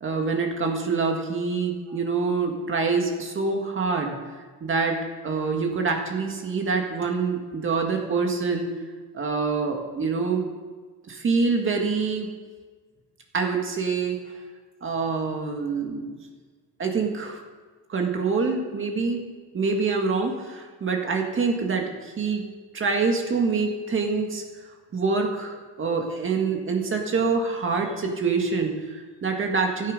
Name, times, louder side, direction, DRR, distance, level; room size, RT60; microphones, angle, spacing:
voice 1, 0.0-8.7 9.1-10.5 11.1-12.3 13.3-14.2 14.8-16.1 16.8-17.4 17.9-19.2 19.5-22.4 22.7-24.4 24.9-29.9, right 4 dB, 25° right, 2 dB, 1.9 m, -26 dB
16.5 x 13.5 x 5.3 m, 1.4 s
cardioid pair, 170°, 46 cm